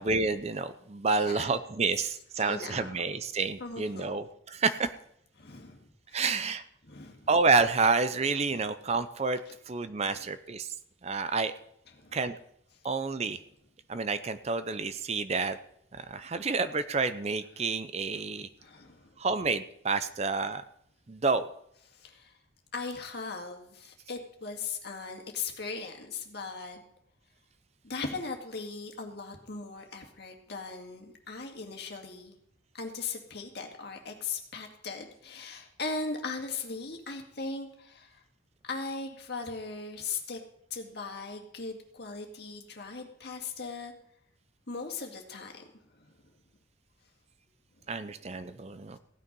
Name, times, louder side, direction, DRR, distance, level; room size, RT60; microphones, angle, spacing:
voice 1, 0.0-4.9 6.1-6.6 7.3-10.7 11.0-11.5 12.1-12.4 12.8-13.4 13.9-15.6 15.9-18.5 19.2-20.6 21.1-21.5 47.9-49.0, right 4 dB, 35° right, 12 dB, 0.5 m, -29 dB
voice 2, 2.4-2.9 3.6-4.1 5.4-6.3 6.9-7.3 8.5-8.6 10.0-10.3 12.0-12.2 18.6-19.2 21.9-22.3 22.7-26.8 27.8-32.3 32.7-38.2 38.6-40.4 40.7-43.9 44.7-45.6 45.9-46.1, left 4 dB, 55° left, 3 dB, 2.1 m, -39 dB
16.0 x 9.5 x 5.4 m, 0.72 s
head